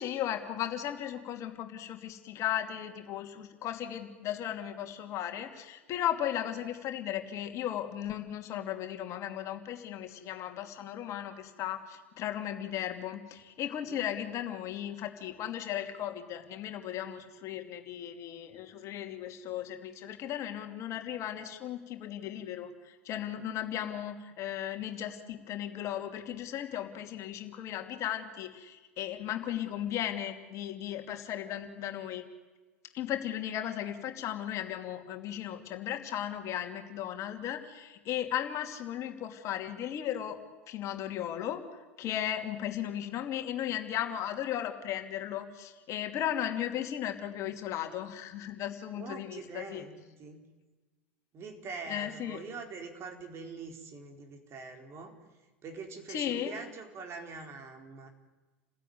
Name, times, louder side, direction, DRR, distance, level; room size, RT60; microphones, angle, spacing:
voice 1, 0.0-32.3 32.9-40.4 40.7-41.6 42.0-49.8 51.9-52.4 56.1-56.5, left 11 dB, 45° left, 5 dB, 2.7 m, -36 dB
voice 2, 48.9-50.5 51.3-55.2 55.6-58.1, right 4 dB, 40° right, 4 dB, 4.4 m, -44 dB
29.0 x 16.0 x 9.5 m, 1.2 s
hypercardioid pair, 85°, 7 cm